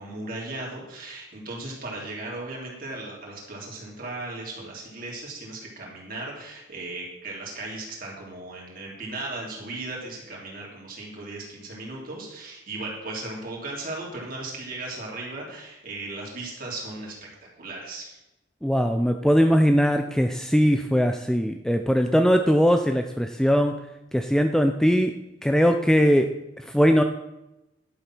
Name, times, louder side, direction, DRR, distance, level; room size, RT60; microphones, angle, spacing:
voice 1, 0.0-17.1 17.6-18.2, right 2 dB, 50° right, -2 dB, 3.2 m, -36 dB
voice 2, 18.6-23.8 24.1-25.1 25.4-26.3 26.6-27.0, equal, 5° left, 6 dB, 0.4 m, -20 dB
11.5 x 7.0 x 6.0 m, 0.95 s
head